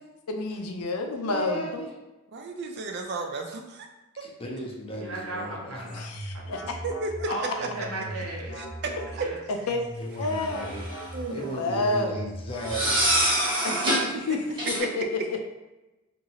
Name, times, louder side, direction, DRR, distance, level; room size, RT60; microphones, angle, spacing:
voice 1, 0.3-1.8 5.9-6.8 9.7-9.8 10.2-10.7 11.3-12.2 13.6-14.4 14.7-15.4, left 2 dB, 80° left, 4 dB, 0.5 m, -29 dB
voice 2, 1.3-1.9 4.2-6.1 10.0-10.8 11.3-13.0, equal, 25° left, -1 dB, 0.5 m, -36 dB
voice 3, 2.3-3.9 6.4-6.5 6.8-7.3 8.6-8.7 9.2-9.3 11.1-11.6 13.8-13.9 14.3-14.4, right 3 dB, 50° right, 3 dB, 0.4 m, -33 dB
voice 4, 5.0-6.0 7.3-8.6 9.1-9.4, right 1 dB, 85° right, -3 dB, 0.9 m, -35 dB
sound 1, 5.5-13.6, equal, 50° left, 0.8 m, -39 dB
sound 2, 10.4-11.1 12.6-14.1 14.6-14.8, right 1 dB, 20° right, 0.8 m, -25 dB
2.9 x 2.5 x 2.8 m, 1.0 s
head